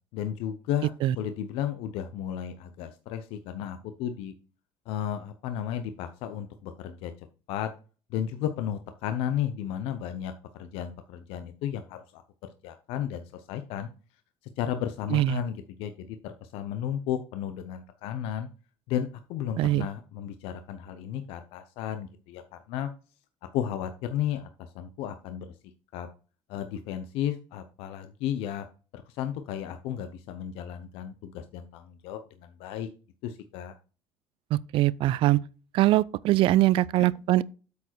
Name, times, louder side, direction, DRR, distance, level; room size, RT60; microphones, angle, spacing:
voice 1, 0.1-4.3 4.9-7.7 8.1-13.9 14.6-18.5 18.9-22.9 23.5-25.5 25.9-26.1 26.5-28.7 28.9-32.9 33.2-33.7, left 10 dB, 80° left, 0.7 m, -34 dB
voice 2, 34.5-35.4 35.7-37.4, right 15 dB, 65° right, 0.4 m, -22 dB
8.2 x 4.8 x 4.5 m
cardioid pair, 110°, 10 cm